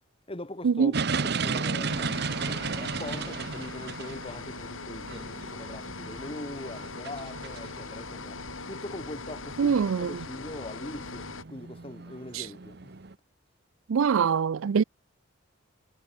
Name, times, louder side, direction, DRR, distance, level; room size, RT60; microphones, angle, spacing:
voice 1, 0.3-13.0, left 1 dB, 25° left, 1.6 m, -42 dB
sound 1, 0.9-13.1, right 4 dB, 55° right, 1.0 m, -35 dB
sound 2, 1.9-11.4, left 3 dB, 80° left, 2.7 m, -40 dB
voice 2, 9.6-10.2 12.3-12.5 13.9-14.8, right 6 dB, 80° right, 0.4 m, -24 dB
head